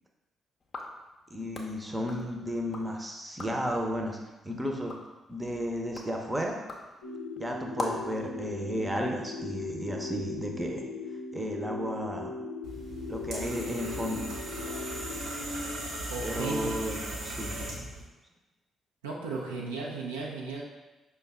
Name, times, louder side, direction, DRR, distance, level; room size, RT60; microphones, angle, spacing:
sound 1, 0.6-2.9 3.2-3.7 4.2-8.2, left 2 dB, 40° left, 0.6 m, -42 dB
voice 1, 1.3-4.2 4.4-5.0 5.3-6.6 7.4-10.8 11.3-12.3 13.1-14.3 16.2-17.0 17.2-17.6, equal, 15° right, 2 dB, 0.7 m, -33 dB
sound 2, 7.0-15.2, left 3 dB, 85° left, 0.6 m, -39 dB
sound 3, 12.6-18.0, right 1 dB, 65° right, 0.9 m, -37 dB
voice 2, 15.8-16.8 19.0-20.6, right 4 dB, 80° right, -3 dB, 0.5 m, -36 dB
5.3 x 2.3 x 3.5 m, 1.1 s
figure-of-eight pair, 40°, 0 cm